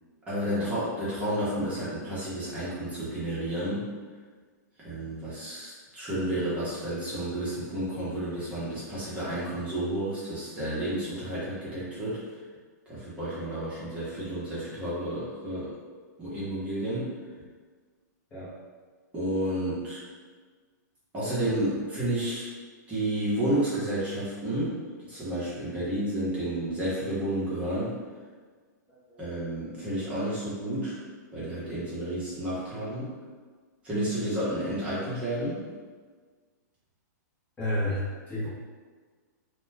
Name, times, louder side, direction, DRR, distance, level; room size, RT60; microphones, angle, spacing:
voice 1, 0.3-3.9 4.8-12.2 12.9-15.7 16.2-17.1 19.1-20.0 21.1-22.5 22.9-24.8 25.1-28.0 29.2-31.0 31.3-33.1 33.8-35.6, right 1 dB, 15° right, -10 dB, 0.9 m, -31 dB
voice 2, 28.9-29.2 37.6-38.5, left 1 dB, 15° left, -10 dB, 0.9 m, -32 dB
2.3 x 2.2 x 3.3 m, 1.5 s
hypercardioid pair, 150°, 10 cm